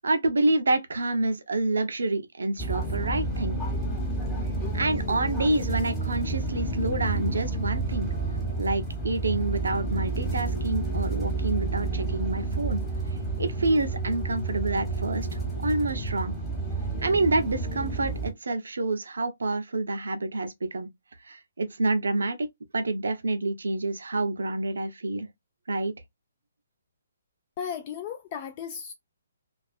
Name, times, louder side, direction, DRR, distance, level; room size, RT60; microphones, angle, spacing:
voice 1, 0.0-3.6 4.7-8.1 8.6-12.8 13.4-16.4 17.0-20.9 21.2-22.4 22.7-25.3 25.7-25.9, right 2 dB, 80° right, 0.5 m, -28 dB
sound 1, 2.6-18.3, right 3 dB, 5° left, 1.1 m, -30 dB
voice 2, 27.6-28.9, left 7 dB, 35° left, 0.3 m, -35 dB
2.4 x 2.3 x 2.3 m
hypercardioid pair, 140°, 0 cm